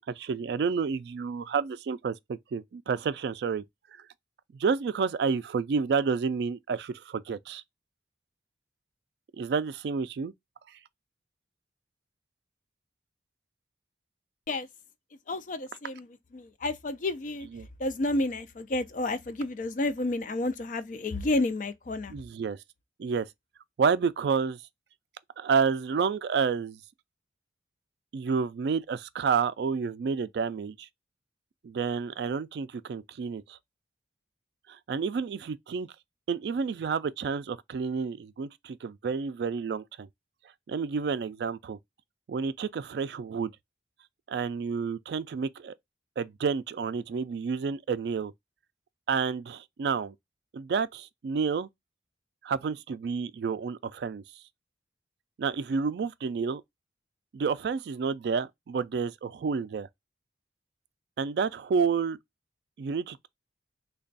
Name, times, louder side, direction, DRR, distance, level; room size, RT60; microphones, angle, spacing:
voice 1, 0.1-3.6 4.5-7.6 9.4-10.3 17.5-17.7 22.1-22.6 23.0-23.3 23.8-24.6 25.4-26.8 28.1-30.9 31.6-33.6 34.7-35.9 36.3-40.1 40.7-41.8 42.3-43.5 44.3-45.7 46.2-48.3 49.1-50.1 50.5-51.7 52.4-54.2 55.4-56.6 57.3-59.9 61.2-62.2 62.8-63.3, right 5 dB, 60° right, 0.3 m, -30 dB
voice 2, 15.3-17.5 17.8-22.1, left 2 dB, 45° left, 0.4 m, -30 dB
3.3 x 2.2 x 3.9 m
head